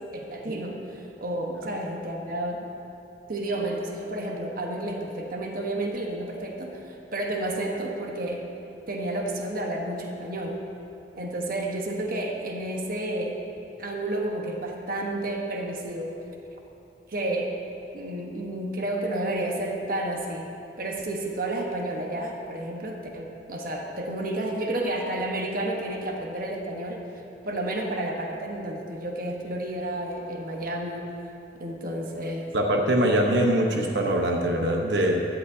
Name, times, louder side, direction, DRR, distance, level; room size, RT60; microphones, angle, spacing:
voice 1, 0.1-2.7 3.3-10.6 11.1-13.4 13.8-16.2 17.1-17.6 17.9-20.5 20.8-27.0 27.4-31.1 31.6-32.5, right 1 dB, 55° right, 1 dB, 1.2 m, -31 dB
voice 2, 32.5-35.3, right 1 dB, 90° right, 1 dB, 1.0 m, -23 dB
16.5 x 11.5 x 2.8 m, 2.9 s
head